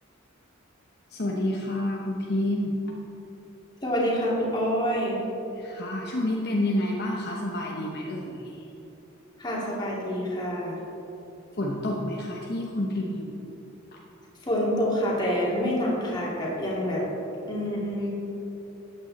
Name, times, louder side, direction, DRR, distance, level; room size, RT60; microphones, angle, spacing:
voice 1, 1.1-2.8 5.6-8.7 11.5-13.3, left 1 dB, 50° left, -1 dB, 1.0 m, -29 dB
voice 2, 3.8-5.2 9.4-10.8 14.4-17.0 17.5-18.1, equal, 20° left, -6 dB, 2.7 m, -27 dB
13.5 x 8.9 x 4.2 m, 3.0 s
head